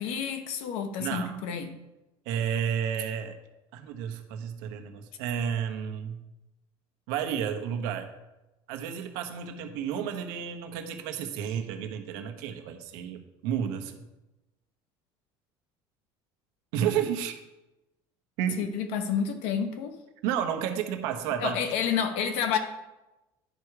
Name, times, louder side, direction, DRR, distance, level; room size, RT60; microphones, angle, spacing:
voice 1, 0.0-1.7 18.6-20.0 21.4-22.6, left 7 dB, 70° left, 7 dB, 1.1 m, -29 dB
voice 2, 1.0-1.4 2.3-3.4 3.7-6.2 7.1-8.1 8.7-14.0 16.7-17.4 18.4-18.7 20.2-21.6, right 8 dB, 85° right, 5 dB, 1.1 m, -31 dB
10.5 x 4.7 x 4.9 m, 1.0 s
cardioid pair, 150°, 11 cm